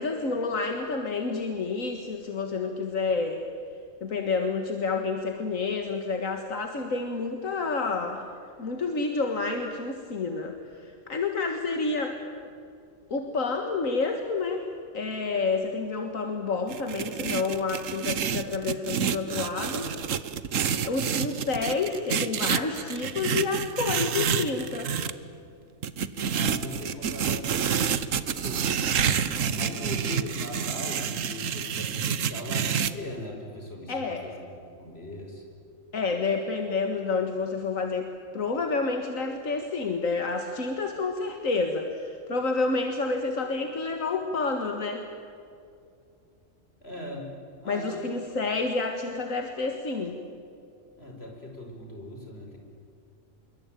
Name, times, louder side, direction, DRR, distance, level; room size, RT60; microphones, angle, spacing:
voice 1, 0.0-3.4 4.0-8.2 8.6-12.2 13.1-14.7 14.9-19.9 20.8-24.9 33.9-34.2 35.9-45.1 47.7-50.2, left 4 dB, 80° left, 4 dB, 2.1 m, -29 dB
sound 1, 16.7-25.1 25.8-32.9, right 7 dB, 75° right, 1.4 m, -28 dB
voice 2, 26.3-35.4 46.8-47.3 47.6-48.1 48.4-48.5 51.0-52.6, left 1 dB, 50° left, 2 dB, 5.7 m, -40 dB
26.0 x 23.5 x 9.1 m, 2.5 s
omnidirectional pair, 1.4 m